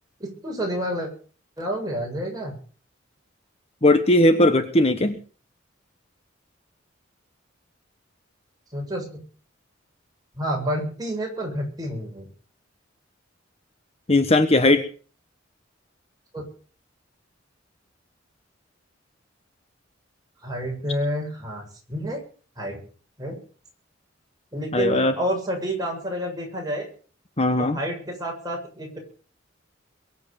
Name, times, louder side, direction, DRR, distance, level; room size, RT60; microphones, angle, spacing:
voice 1, 0.2-1.1 1.6-2.5 8.7-9.2 10.4-12.3 16.3-16.4 20.4-22.2 22.6-22.8 23.2-23.4 24.5-26.9 27.6-29.0, equal, 20° right, 0 dB, 7.5 m, -29 dB
voice 2, 3.8-5.2 14.1-14.8 24.7-25.2 27.4-27.8, left 1 dB, 30° left, 8 dB, 1.2 m, -18 dB
22.5 x 8.1 x 7.2 m, 0.41 s
head